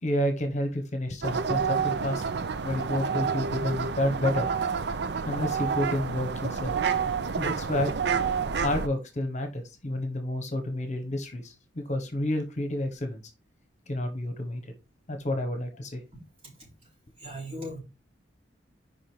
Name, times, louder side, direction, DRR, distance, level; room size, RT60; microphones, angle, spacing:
voice 1, 0.0-2.2 2.6-4.5 5.3-6.7 7.3-7.9 8.6-13.2 13.9-14.6 15.1-16.0, left 1 dB, 40° left, 1.1 m, -30 dB
sound 1, 1.2-8.9, right 6 dB, 65° right, 0.6 m, -29 dB
voice 2, 17.2-17.8, equal, 35° right, 4.0 m, -38 dB
5.2 x 5.0 x 4.5 m
head